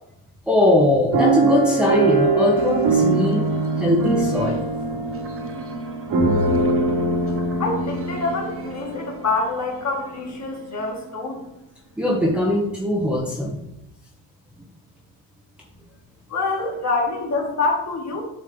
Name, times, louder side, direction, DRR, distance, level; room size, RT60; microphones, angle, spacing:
voice 1, 0.5-3.4 3.8-4.6 12.0-13.7, left 1 dB, ahead, -3 dB, 0.9 m, -20 dB
sound 1, 1.1-9.2 9.8-9.9 10.2-10.5, right 2 dB, 45° right, 1.7 m, -22 dB
sound 2, 2.6-11.6, right 5 dB, 30° right, 0.8 m, -38 dB
voice 2, 7.6-11.4 16.3-18.2, left 3 dB, 35° left, -1 dB, 1.9 m, -26 dB
8.8 x 3.2 x 3.8 m, 0.84 s
cardioid pair, 90°, 45 cm